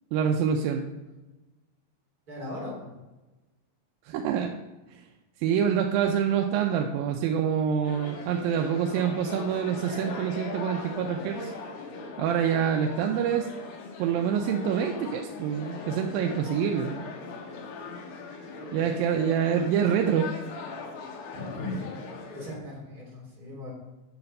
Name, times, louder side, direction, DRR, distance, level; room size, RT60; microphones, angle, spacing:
voice 1, 0.1-0.9 4.1-4.5 5.4-11.5 12.2-13.5 14.0-17.1 18.7-20.3, right 8 dB, 85° right, 3 dB, 2.4 m, -26 dB
voice 2, 2.3-2.9 18.7-18.8 21.3-21.8 22.3-23.7, left 1 dB, 25° right, -3 dB, 3.5 m, -38 dB
sound 1, 7.8-22.6, left 4 dB, 85° left, 3.2 m, -40 dB
9.4 x 6.7 x 5.3 m, 1.1 s
omnidirectional pair, 4.1 m